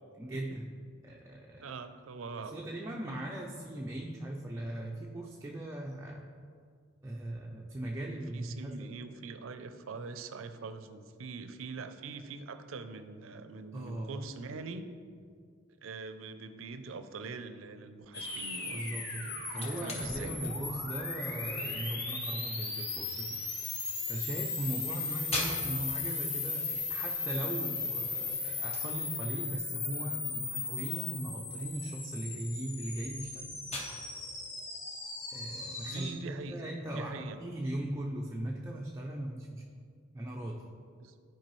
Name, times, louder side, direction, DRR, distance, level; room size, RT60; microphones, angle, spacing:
voice 1, 0.2-0.7 1.0-1.8 2.4-6.3 7.0-8.9 13.7-14.3 18.7-23.4 24.1-33.5 35.3-39.6 40.1-40.6, right 1 dB, 15° right, -2 dB, 0.4 m, -39 dB
voice 2, 1.6-2.5 7.9-14.8 15.8-18.9 19.6-20.3 35.8-36.6 37.0-37.4 41.0-41.1, right 4 dB, 85° right, 10 dB, 0.5 m, -43 dB
sound 1, 18.1-36.1, left 4 dB, 65° left, 1.3 m, -37 dB
sound 2, 19.0-36.6, left 2 dB, 30° left, 1.0 m, -46 dB
10.5 x 4.6 x 3.1 m, 2.1 s
head